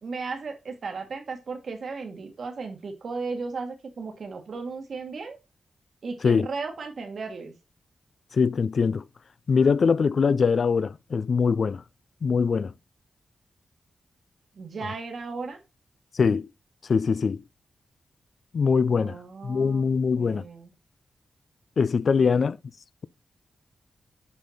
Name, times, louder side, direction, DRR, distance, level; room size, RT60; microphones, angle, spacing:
voice 1, 0.0-5.4 6.0-7.5 14.6-15.6 18.9-19.9 20.2-20.7 22.2-22.4, right 4 dB, 65° right, 1.6 m, -35 dB
voice 2, 8.3-9.0 9.5-11.8 12.2-12.7 16.1-16.5 16.9-17.4 18.5-19.2 19.4-20.4 21.8-22.6, left 5 dB, 60° left, 0.4 m, -22 dB
7.0 x 5.2 x 4.2 m
cardioid pair, 85°, 0 cm